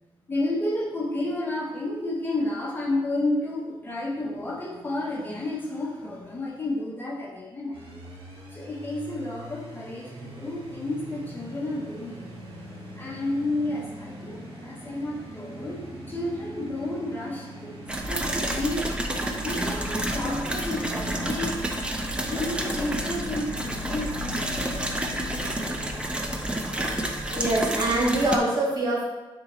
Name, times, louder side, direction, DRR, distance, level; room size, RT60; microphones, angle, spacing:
voice 1, 0.3-8.0 8.5-12.3 13.0-24.8, left 1 dB, 20° left, -3 dB, 0.9 m, -31 dB
sound 1, 7.7-27.5, equal, 85° right, 1.5 m, -42 dB
sound 2, 17.9-28.4, right 1 dB, 10° right, 0.5 m, -29 dB
voice 2, 27.3-29.0, right 1 dB, 45° right, -5 dB, 1.7 m, -24 dB
9.4 x 3.8 x 3.0 m, 1.1 s
wide cardioid pair, 170°, 9 cm